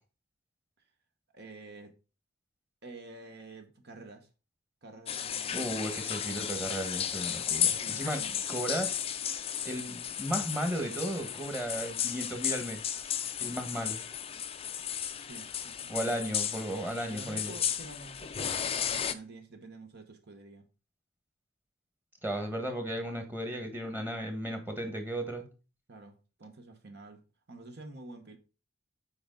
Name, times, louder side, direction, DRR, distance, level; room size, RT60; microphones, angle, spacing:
voice 1, 1.3-1.9 2.8-4.3 4.8-5.7 7.5-8.6 15.1-16.3 17.0-20.6 25.9-27.2 27.5-28.4, right 3 dB, 50° right, 1.1 m, -49 dB
sound 1, 5.1-19.1, left 9 dB, 25° left, 0.5 m, -34 dB
voice 2, 5.5-8.2 8.5-9.0 9.6-12.8 13.4-14.0 15.9-17.5 22.2-25.4, equal, 10° right, 1.3 m, -35 dB
7.9 x 4.9 x 3.8 m
head